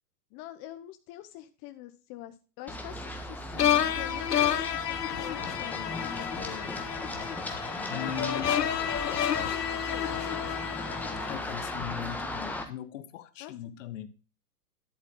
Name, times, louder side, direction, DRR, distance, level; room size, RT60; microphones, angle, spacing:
voice 1, 0.3-6.9 7.8-10.4 13.4-13.5, left 13 dB, 30° left, 0.8 m, -45 dB
Run, 2.7-12.6, left 1 dB, 5° left, 1.4 m, -37 dB
sound 1, 3.6-11.8, left 10 dB, 80° left, 1.1 m, -30 dB
voice 2, 7.9-8.8 11.3-14.1, left 9 dB, 50° left, 1.2 m, -39 dB
11.0 x 7.9 x 3.7 m
hypercardioid pair, 120°, 47 cm